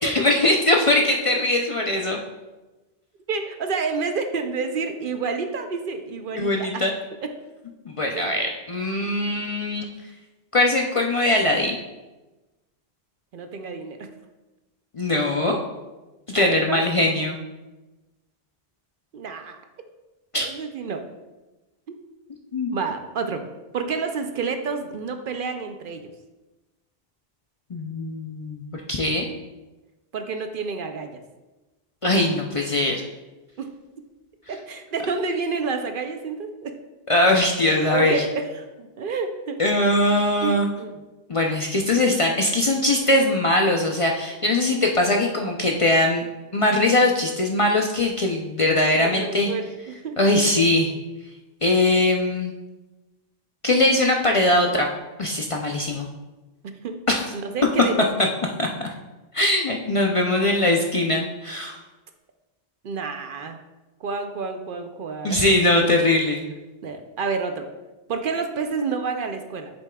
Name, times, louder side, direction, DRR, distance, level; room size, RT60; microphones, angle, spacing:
voice 1, 0.0-2.2 6.4-6.9 7.9-9.9 10.5-11.8 14.9-15.6 16.3-17.4 20.3-20.5 22.5-22.7 27.7-28.6 28.9-29.3 32.0-33.0 37.1-38.2 39.6-40.7 41.3-46.2 46.5-49.5 50.2-50.9 51.6-52.5 53.6-54.9 55.2-56.1 57.1-57.3 58.6-58.7 59.3-61.8 65.2-66.4, left 1 dB, 40° left, 1 dB, 0.5 m, -21 dB
voice 2, 3.3-6.8 7.2-7.3 8.1-8.3 13.3-14.1 16.4-16.8 19.1-19.6 20.4-21.1 22.7-23.5 23.7-26.0 30.1-31.1 33.6-33.7 34.5-36.7 37.9-39.6 40.4-41.0 49.0-50.2 56.6-57.0 57.3-58.1 62.8-63.6 64.0-65.4 66.8-67.7 68.1-69.7, right 4 dB, 60° right, 6 dB, 0.7 m, -29 dB
8.0 x 6.9 x 2.3 m, 1.1 s
omnidirectional pair, 1.1 m